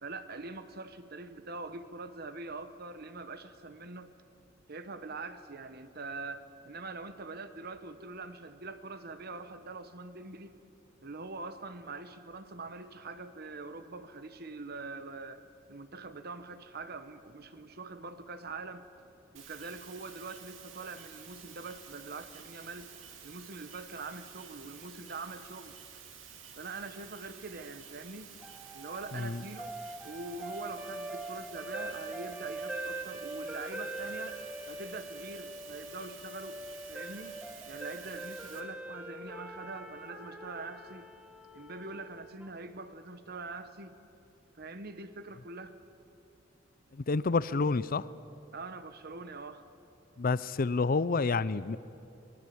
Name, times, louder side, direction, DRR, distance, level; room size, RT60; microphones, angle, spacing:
voice 1, 0.0-4.1 4.7-10.6 11.0-15.4 15.7-18.9 19.3-22.9 23.2-25.8 26.6-28.3 28.7-29.8 30.0-34.4 34.7-36.6 36.9-41.1 41.5-44.0 44.6-45.8 48.5-49.6, right 3 dB, 55° right, 10 dB, 1.2 m, -43 dB
sound 1, 19.4-38.6, right 8 dB, 80° right, 2.7 m, -51 dB
sound 2, 28.4-42.5, right 2 dB, 5° right, 1.6 m, -43 dB
voice 2, 46.9-48.1 50.2-51.8, left 4 dB, 45° left, 18 dB, 0.6 m, -29 dB
24.5 x 19.5 x 8.6 m, 2.7 s
head